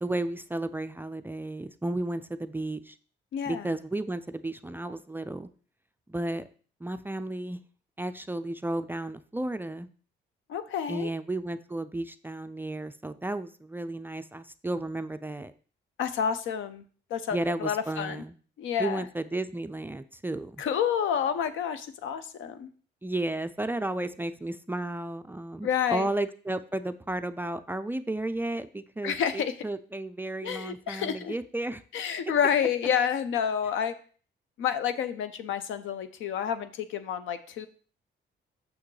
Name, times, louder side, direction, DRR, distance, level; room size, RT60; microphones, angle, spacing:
voice 1, 0.0-3.0 3.5-5.5 6.1-6.5 6.8-7.6 8.0-9.9 10.9-15.5 17.3-18.3 18.8-20.6 23.0-31.8, right 2 dB, 10° right, 10 dB, 0.3 m, -33 dB
voice 2, 3.3-3.7 10.5-11.1 16.0-16.8 17.1-18.2 18.6-19.0 20.6-22.7 25.6-26.1 29.0-29.5 30.4-31.3 31.9-33.9 34.6-37.7, left 8 dB, 80° left, 11 dB, 0.7 m, -29 dB
6.3 x 5.9 x 3.2 m, 0.42 s
cardioid pair, 90°, 20 cm